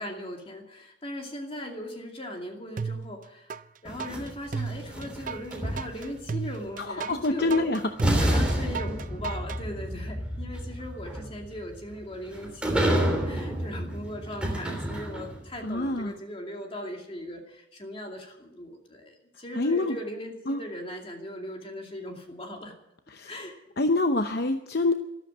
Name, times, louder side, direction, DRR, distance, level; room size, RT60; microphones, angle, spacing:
voice 1, 0.0-7.7 8.2-22.7 23.3-23.6, left 1 dB, 30° left, 2 dB, 2.5 m, -39 dB
sound 1, 2.8-3.6 4.0-9.6, right 5 dB, 45° right, 0.5 m, -34 dB
sound 2, 3.8-6.2 7.4-7.5 8.0-15.5, equal, 5° right, 3.0 m, -29 dB
voice 2, 6.8-7.8 8.2-8.4 15.6-16.1 19.5-20.0 20.5-20.6 23.1-23.3 23.8-24.9, left 2 dB, 55° left, 6 dB, 0.8 m, -26 dB
13.5 x 13.0 x 7.3 m, 0.84 s
head